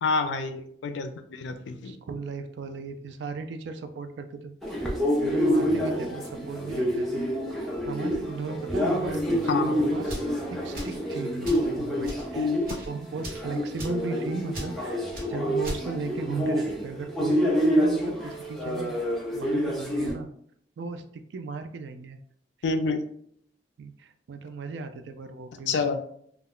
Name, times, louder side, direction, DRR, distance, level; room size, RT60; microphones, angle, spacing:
voice 1, 0.0-2.0 9.5-9.9 12.4-12.7 22.6-23.0 25.7-26.0, left 4 dB, 75° left, 8 dB, 0.3 m, -28 dB
voice 2, 1.8-5.0 5.2-10.2 10.5-12.5 12.9-19.0 19.3-20.3 20.8-22.2 23.8-26.0, right 4 dB, 70° right, 8 dB, 0.3 m, -37 dB
sound 1, 4.6-20.1, equal, ahead, 0.4 m, -28 dB
sound 2, 10.0-10.3 10.7-11.0 11.4-11.7 12.0-12.3 12.6-12.9 13.2-13.5 13.8-14.0 14.5-14.7 15.1-15.3 15.6-15.8, equal, 50° right, 0.8 m, -36 dB
2.3 x 2.1 x 3.6 m, 0.65 s
head